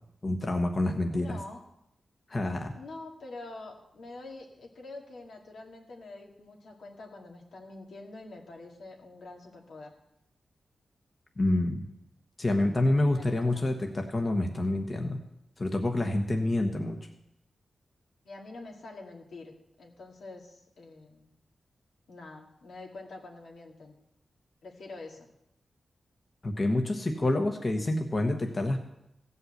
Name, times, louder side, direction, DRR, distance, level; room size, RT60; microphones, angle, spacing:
voice 1, 0.2-1.4 2.3-2.7 11.4-11.9 12.4-15.2 15.6-17.0 26.4-28.8, left 1 dB, 35° left, 4 dB, 1.2 m, -27 dB
voice 2, 1.1-1.6 2.7-9.9 13.1-13.6 18.2-19.5 19.8-21.3 22.1-23.9 24.6-25.3, left 2 dB, 80° left, 0 dB, 2.4 m, -46 dB
15.5 x 5.6 x 8.0 m, 0.84 s
wide cardioid pair, 95°, 0 cm